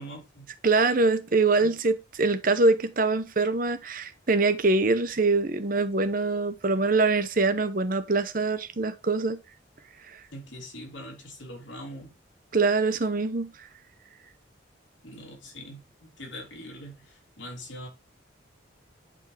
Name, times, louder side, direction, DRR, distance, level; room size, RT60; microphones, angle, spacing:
voice 1, 0.0-0.5 1.6-1.7 10.3-12.1 15.0-17.0 17.4-17.9, equal, 75° left, 3.4 m, -42 dB
voice 2, 0.6-9.4 12.5-13.5, right 3 dB, 45° right, 0.8 m, -24 dB
10.5 x 4.6 x 3.3 m
head